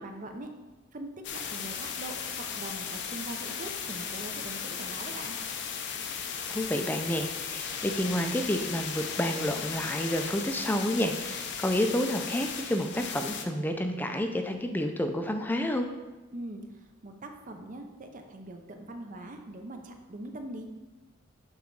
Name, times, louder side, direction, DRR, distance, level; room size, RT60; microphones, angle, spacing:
voice 1, 0.0-0.5 0.9-5.4 16.3-16.6 17.0-20.7, right 1 dB, 40° right, 5 dB, 0.7 m, -42 dB
sound 1, 1.2-13.4, left 6 dB, 55° left, 0.6 m, -36 dB
voice 2, 6.5-15.9, equal, 10° left, 5 dB, 0.5 m, -29 dB
7.2 x 4.0 x 4.7 m, 1.2 s
head